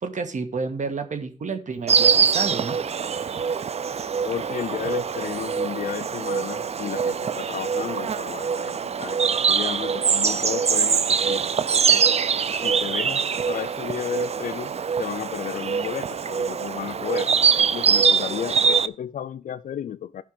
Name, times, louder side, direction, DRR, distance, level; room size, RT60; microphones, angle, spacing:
voice 1, 0.0-2.7, right 4 dB, 70° right, 1.5 m, -30 dB
Insect, 1.9-18.9, right 6 dB, 50° right, 0.5 m, -23 dB
voice 2, 4.2-12.0 12.6-14.7 15.0-17.3 17.6-20.2, left 9 dB, 80° left, 0.4 m, -33 dB
13.0 x 5.6 x 5.0 m
cardioid pair, 65°, 13 cm